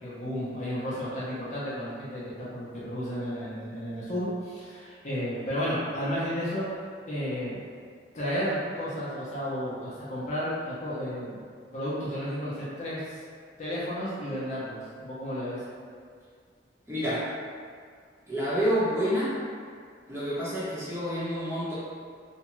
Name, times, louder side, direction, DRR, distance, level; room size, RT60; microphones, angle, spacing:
voice 1, 0.0-6.6 7.1-7.6 8.1-11.4 11.7-13.2 13.6-15.6, equal, 40° left, -9 dB, 0.6 m, -32 dB
voice 2, 16.9-17.3 18.3-19.4 20.1-21.8, equal, 15° right, -12 dB, 0.9 m, -28 dB
2.5 x 2.2 x 2.9 m, 2.1 s
head